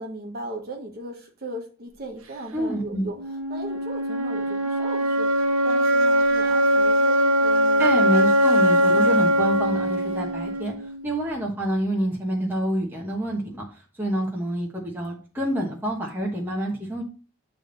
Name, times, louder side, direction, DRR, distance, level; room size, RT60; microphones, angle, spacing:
voice 1, 0.0-3.2 3.5-8.1 8.7-9.2, right 1 dB, 45° right, 1 dB, 1.3 m, -37 dB
voice 2, 2.5-3.1 7.8-10.7 11.0-13.7 14.0-17.0, right 1 dB, 10° right, -2 dB, 1.1 m, -27 dB
sound 1, 3.2-11.2, equal, 90° right, 1.1 m, -21 dB
8.5 x 3.5 x 3.9 m, 0.36 s
head